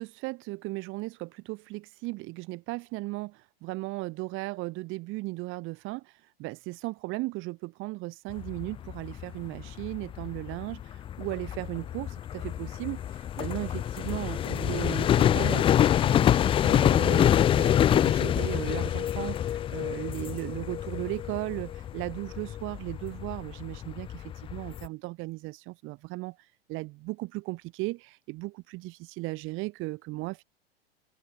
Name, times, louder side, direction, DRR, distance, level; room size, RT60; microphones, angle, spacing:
voice 1, 0.0-30.4, right 22 dB, 40° right, 3.3 m, -36 dB
sound 1, 8.3-24.9, left 10 dB, 20° left, 0.5 m, -26 dB
open air
figure-of-eight pair, 95°, 30 cm